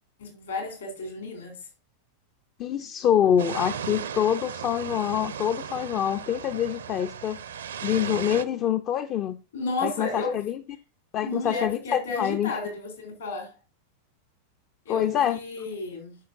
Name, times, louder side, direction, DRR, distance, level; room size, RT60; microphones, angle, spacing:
voice 1, 0.2-1.7 9.5-10.4 11.2-13.5 14.9-16.2, left 3 dB, 65° left, 3.7 m, -33 dB
voice 2, 2.6-7.4 7.8-9.4 9.8-10.6 11.1-12.5 14.9-15.4, left 10 dB, 35° left, 0.5 m, -25 dB
sound 1, 3.4-8.4, right 8 dB, 65° right, 0.7 m, -36 dB
12.0 x 5.7 x 2.6 m
figure-of-eight pair, 90°, 0 cm